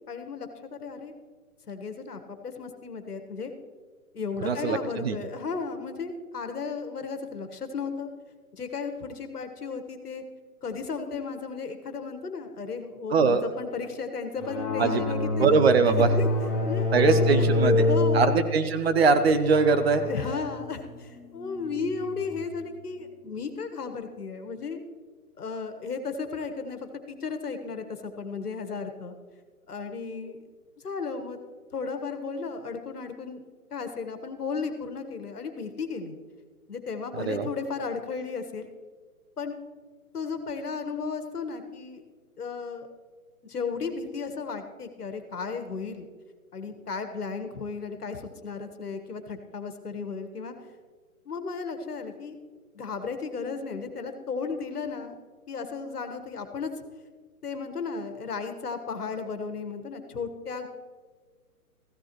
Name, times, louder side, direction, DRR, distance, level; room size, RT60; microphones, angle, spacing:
voice 1, 0.1-1.1 1.7-3.5 4.1-8.1 8.5-10.2 10.6-15.5 15.8-18.3 20.0-24.8 25.4-29.1 29.7-30.4 30.8-31.4 31.7-33.4 33.7-36.2 36.7-38.7 39.4-39.6 40.1-42.0 42.4-42.9 43.4-46.1 46.5-50.5 51.2-52.4 52.7-55.1 55.5-56.7 57.4-60.7, left 5 dB, 80° left, 7 dB, 1.5 m, -34 dB
voice 2, 4.4-5.2 13.1-13.4 14.8-15.0 15.4-16.1 16.9-17.9 18.1-20.0 37.2-37.5, right 4 dB, 45° right, 10 dB, 0.8 m, -22 dB
sound 1, 14.4-22.5, left 2 dB, ahead, 0.6 m, -27 dB
15.0 x 12.5 x 3.0 m, 1.5 s
figure-of-eight pair, 140°, 45 cm